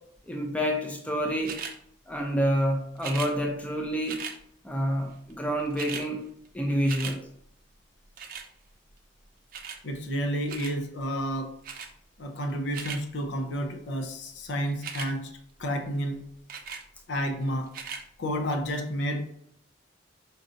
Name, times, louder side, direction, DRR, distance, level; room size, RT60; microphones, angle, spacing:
voice 1, 0.3-1.6 2.1-4.3 4.6-6.2 6.5-7.2, equal, 5° left, 0 dB, 0.4 m, -28 dB
sound 1, 1.4-1.8 3.0-3.3 4.1-4.4 5.3-5.4 5.6-6.1 6.5-7.2 8.2-8.5 9.5-9.8 10.5-10.8 11.6-11.9 12.5-13.0 14.7-15.1 16.5-16.9 17.7-18.0 18.7-18.8, right 6 dB, 50° right, 0.5 m, -38 dB
voice 2, 9.8-11.5 12.2-15.3 15.6-16.2 17.1-17.7 18.2-19.3, equal, 70° left, 4 dB, 0.6 m, -30 dB
5.2 x 2.5 x 2.7 m, 0.70 s
head